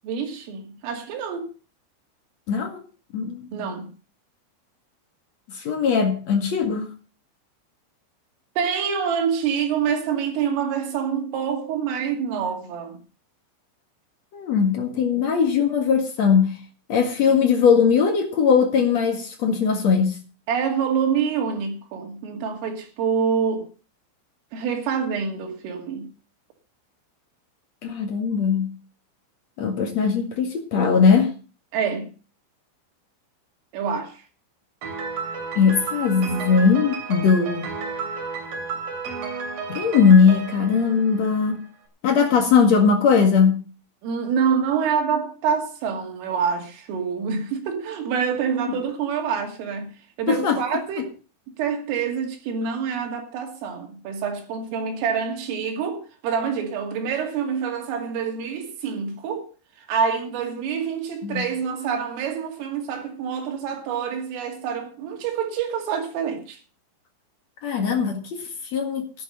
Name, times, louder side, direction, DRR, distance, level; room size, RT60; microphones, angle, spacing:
voice 1, 0.0-1.5 3.5-3.9 8.6-13.0 17.3-17.4 20.5-23.7 24.5-26.1 31.7-32.1 33.7-34.2 44.0-49.9 50.2-51.1 51.6-59.5 59.9-66.6, right 7 dB, 80° right, 5.1 m, -26 dB
voice 2, 2.5-2.8 3.1-3.7 5.5-6.9 14.3-16.5 16.9-20.2 27.8-28.7 29.6-31.3 35.6-37.7 39.7-41.6 42.0-43.5 50.3-50.6 61.2-61.5 67.6-69.2, left 6 dB, 55° left, 1.9 m, -20 dB
Piano, 34.8-41.6, right 4 dB, 60° right, 4.9 m, -32 dB
12.5 x 11.5 x 5.3 m
omnidirectional pair, 5.7 m